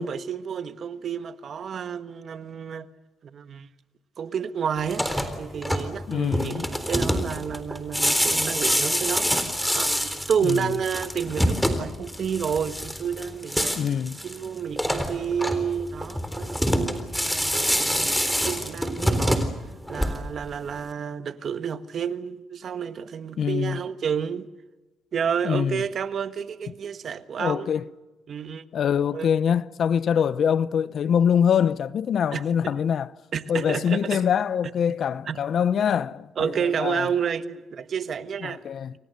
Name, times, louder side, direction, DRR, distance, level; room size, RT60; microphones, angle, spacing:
voice 1, 0.0-2.9 3.2-3.7 4.2-5.1 5.4-9.4 9.7-13.8 14.2-18.1 18.4-19.6 19.9-24.5 25.1-27.7 28.3-28.7 29.1-29.3 32.3-32.8 33.3-34.2 35.3-35.4 36.4-38.6, right 7 dB, 55° right, 1.4 m, -30 dB
sound 1, 4.8-20.5, equal, 5° left, 3.8 m, -26 dB
voice 2, 6.1-6.7 10.4-10.7 13.7-14.2 23.4-23.8 25.4-25.8 27.4-27.9 28.7-33.1 33.5-37.1 38.4-38.9, left 8 dB, 60° left, 0.9 m, -24 dB
29.5 x 23.5 x 6.8 m
cardioid pair, 90°, 0 cm